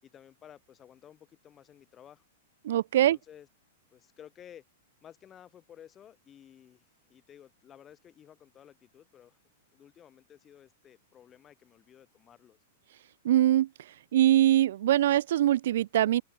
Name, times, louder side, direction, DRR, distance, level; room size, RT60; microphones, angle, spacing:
voice 1, 0.0-2.2 2.9-3.5 3.9-4.6 5.0-9.4 9.7-12.6, left 10 dB, 15° left, 5.0 m, -54 dB
voice 2, 2.6-3.2 13.2-13.7 14.1-16.2, right 12 dB, 55° right, 0.4 m, -23 dB
supercardioid pair, 175°, 0 cm